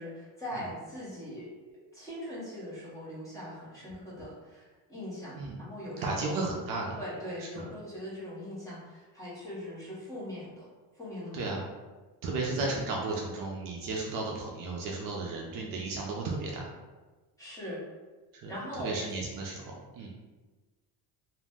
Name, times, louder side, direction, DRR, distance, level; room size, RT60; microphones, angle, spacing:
voice 1, 0.0-1.6 1.9-6.4 6.9-10.7 11.0-11.4 17.4-17.8 18.5-19.0, equal, 10° left, -9 dB, 0.7 m, -41 dB
voice 2, 6.0-7.0 7.4-7.5 11.3-11.7 12.2-16.7 18.4-20.1, right 3 dB, 50° right, -2 dB, 0.5 m, -34 dB
2.5 x 2.0 x 3.4 m, 1.3 s
cardioid pair, 170°, 43 cm